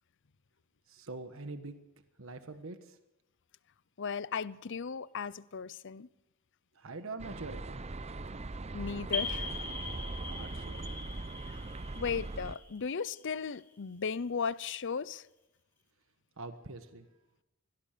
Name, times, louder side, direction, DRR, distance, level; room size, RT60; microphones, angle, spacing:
voice 1, 0.9-1.8 2.2-3.0 6.7-7.8 10.2-10.8 16.4-17.1, right 3 dB, 65° right, 1.4 m, -44 dB
voice 2, 4.0-6.1 8.7-9.5 12.0-15.2, left 6 dB, 60° left, 0.7 m, -36 dB
sound 1, 7.2-12.6, right 2 dB, 30° right, 0.7 m, -40 dB
sound 2, 9.1-13.6, left 4 dB, 10° left, 5.9 m, -41 dB
24.0 x 17.5 x 6.7 m
head